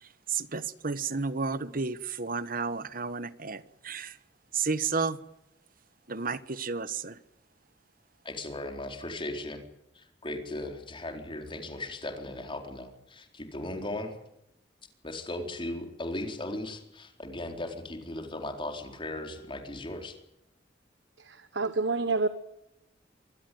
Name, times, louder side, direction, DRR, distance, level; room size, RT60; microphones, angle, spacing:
voice 1, 0.0-4.2 4.5-5.2 6.1-7.2, right 4 dB, 50° right, 15 dB, 1.3 m, -32 dB
voice 2, 8.2-9.6 9.9-14.1 15.0-20.1, left 1 dB, 30° left, 4 dB, 4.2 m, -37 dB
voice 3, 21.2-22.3, right 3 dB, 75° right, 11 dB, 1.4 m, -28 dB
25.0 x 20.0 x 9.4 m, 0.85 s
head